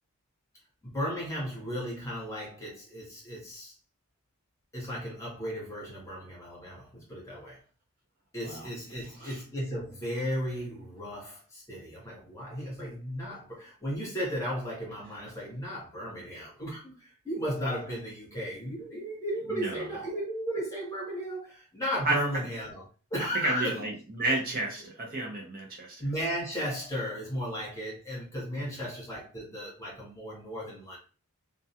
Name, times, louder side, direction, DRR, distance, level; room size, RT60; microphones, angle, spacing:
voice 1, 0.8-3.7 4.7-7.6 8.3-22.8 23.1-23.9 24.8-24.9 26.0-31.0, equal, 15° left, 0.9 m, -35 dB
voice 2, 23.4-25.9, right 2 dB, 40° right, 0.6 m, -31 dB
2.3 x 2.2 x 2.7 m
head